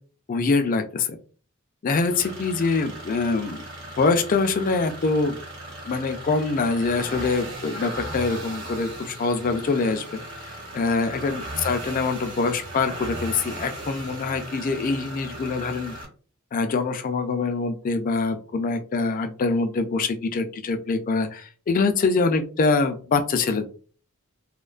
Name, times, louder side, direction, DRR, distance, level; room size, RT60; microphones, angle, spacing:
voice 1, 0.3-1.2 1.8-3.7 4.0-5.4 5.8-10.2 10.7-15.9 16.5-23.7, left 4 dB, 40° left, 7 dB, 0.3 m, -24 dB
sound 1, 2.0-16.0, right 1 dB, 60° right, 0.9 m, -37 dB
2.5 x 2.1 x 2.4 m, 0.39 s
head